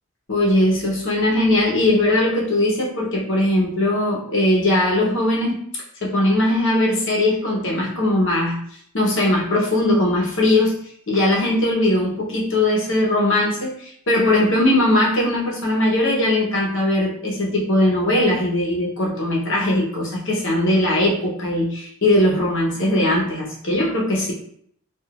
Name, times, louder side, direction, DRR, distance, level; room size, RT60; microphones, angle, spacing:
voice 1, 0.3-8.6 8.9-24.3, left 1 dB, 55° left, -3 dB, 1.0 m, -20 dB
4.8 x 2.6 x 2.5 m, 0.64 s
head